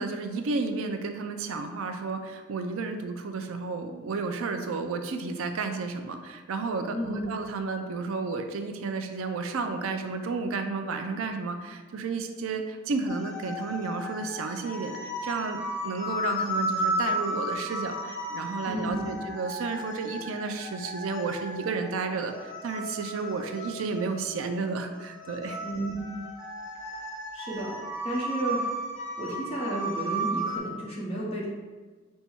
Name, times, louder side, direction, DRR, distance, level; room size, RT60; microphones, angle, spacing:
voice 1, 0.0-25.6, right 4 dB, 75° right, 6 dB, 0.4 m, -32 dB
voice 2, 6.9-7.3 18.7-19.2 25.6-26.1 27.0-27.8 28.0-28.7 29.2-31.4, right 1 dB, 30° left, -5 dB, 1.2 m, -32 dB
sound 1, 13.1-30.6, equal, 70° left, 1.1 m, -34 dB
5.4 x 2.3 x 4.4 m, 1.4 s
head